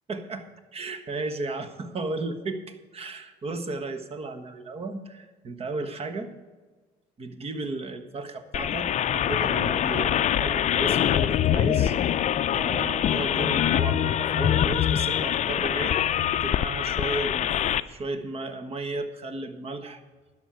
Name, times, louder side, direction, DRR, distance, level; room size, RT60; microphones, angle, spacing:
voice 1, 0.1-0.5 0.7-6.3 7.2-11.9 12.5-16.0 16.4-17.5 17.9-20.0, right 3 dB, 35° right, 9 dB, 1.3 m, -34 dB
sound 1, 8.5-17.8, left 10 dB, 45° left, 0.4 m, -24 dB
11.0 x 6.3 x 8.9 m, 1.3 s
cardioid pair, 110°, 17 cm